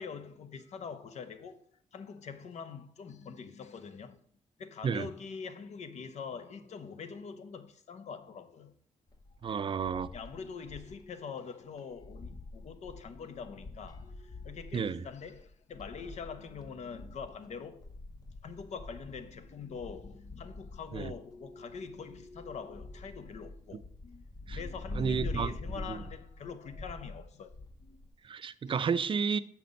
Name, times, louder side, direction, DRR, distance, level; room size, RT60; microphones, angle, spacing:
voice 1, 0.0-1.6 1.9-4.2 4.6-8.7 9.4-9.5 10.1-17.9 18.4-24.3 24.5-27.6 27.8-28.0 28.6-28.9, left 5 dB, 65° left, 0.9 m, -44 dB
sound 1, 9.1-11.1 11.4-11.5 11.8-28.1, left 2 dB, 30° left, 1.0 m, -45 dB
voice 2, 9.4-10.1 14.7-15.0 20.9-21.1 24.5-24.6 25.0-25.5 25.9-26.0 28.2-29.4, right 6 dB, 45° right, 0.5 m, -31 dB
7.3 x 5.9 x 5.3 m
cardioid pair, 90°, 12 cm